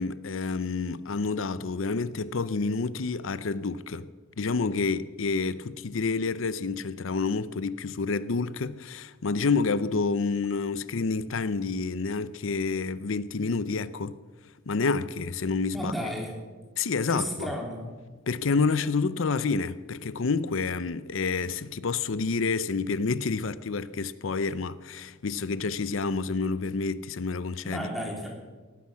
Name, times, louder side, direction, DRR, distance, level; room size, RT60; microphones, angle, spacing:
voice 1, 0.0-4.1 4.4-14.1 14.7-15.9 16.8-17.5 18.3-27.8, left 4 dB, 75° left, 0.6 m, -28 dB
voice 2, 15.7-16.3 17.1-17.9 27.6-28.3, equal, ahead, 3.2 m, -33 dB
18.0 x 10.0 x 7.2 m
head